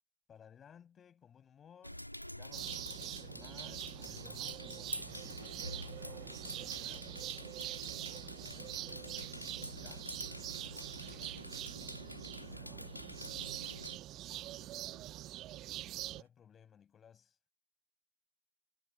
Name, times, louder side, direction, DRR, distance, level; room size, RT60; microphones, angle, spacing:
voice 1, 0.3-7.1 8.1-10.1 15.8-17.4, left 8 dB, 25° left, 7.0 m, -60 dB
sound 1, 1.8-14.0, left 1 dB, 90° left, 2.7 m, -47 dB
sound 2, 2.5-16.2, right 15 dB, 35° right, 0.7 m, -45 dB
sound 3, 4.9-16.3, right 12 dB, 60° right, 7.5 m, -65 dB
voice 2, 10.9-13.7 14.3-15.2, left 8 dB, 65° left, 6.6 m, -65 dB
figure-of-eight pair, 90°, 0 cm